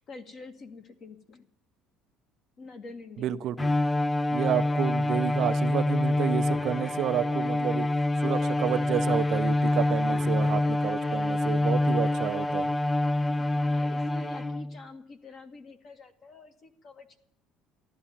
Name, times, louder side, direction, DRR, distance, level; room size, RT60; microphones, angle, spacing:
voice 1, 0.0-1.5 2.6-3.6 13.3-17.2, left 3 dB, 40° left, 7 dB, 1.8 m, -46 dB
voice 2, 3.2-3.7 4.3-7.9 8.2-12.7, right 11 dB, 55° right, 11 dB, 0.5 m, -30 dB
Bowed string instrument, 3.6-14.8, left 2 dB, 10° left, 0.5 m, -26 dB
14.0 x 11.5 x 7.0 m, 0.68 s
cardioid pair, 130°, 0 cm